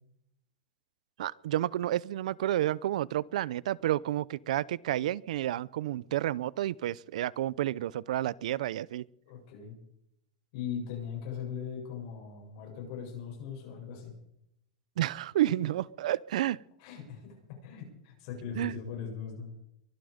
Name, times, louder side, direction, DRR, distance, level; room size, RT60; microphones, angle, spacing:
voice 1, 1.2-9.1 15.0-16.6 18.6-18.7, right 13 dB, 80° right, 23 dB, 0.5 m, -30 dB
voice 2, 9.3-9.8 10.5-14.1 16.8-17.4 17.6-19.6, left 7 dB, 55° left, 1 dB, 7.7 m, -39 dB
23.5 x 12.0 x 5.1 m, 0.77 s
supercardioid pair, 155°, 4 cm